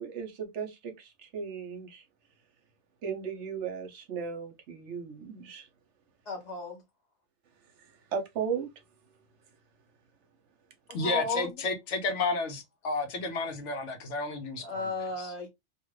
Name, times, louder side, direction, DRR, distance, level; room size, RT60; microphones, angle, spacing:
voice 1, 0.0-2.1 3.0-5.7 7.8-8.7, right 6 dB, 70° right, 1.0 m, -36 dB
voice 2, 6.3-6.8 10.9-11.5 14.6-15.5, left 3 dB, 40° left, 0.8 m, -33 dB
voice 3, 10.9-14.9 15.2-15.3, left 3 dB, 70° left, 1.0 m, -32 dB
2.6 x 2.4 x 3.0 m
omnidirectional pair, 1.3 m